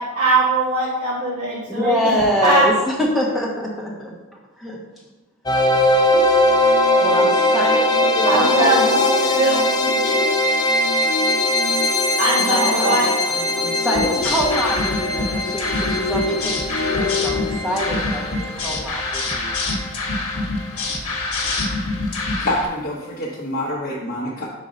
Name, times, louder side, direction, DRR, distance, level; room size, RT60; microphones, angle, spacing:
voice 1, 0.0-2.1 2.4-2.7 8.3-10.2 12.2-13.1, right 1 dB, 80° right, -12 dB, 2.0 m, -20 dB
voice 2, 1.7-4.1 4.6-4.8 7.0-8.8 12.4-13.0 13.3-18.2 18.6-19.5, equal, ahead, -5 dB, 1.2 m, -24 dB
sound 1, 5.5-20.4, left 1 dB, 20° left, 0.4 m, -21 dB
sound 2, 6.1-18.0, left 3 dB, 85° left, 0.5 m, -28 dB
sound 3, 13.9-22.7, left 2 dB, 65° left, 1.1 m, -26 dB
voice 3, 22.4-24.5, left 1 dB, 40° left, -5 dB, 0.8 m, -26 dB
4.9 x 4.1 x 5.1 m, 1.0 s
head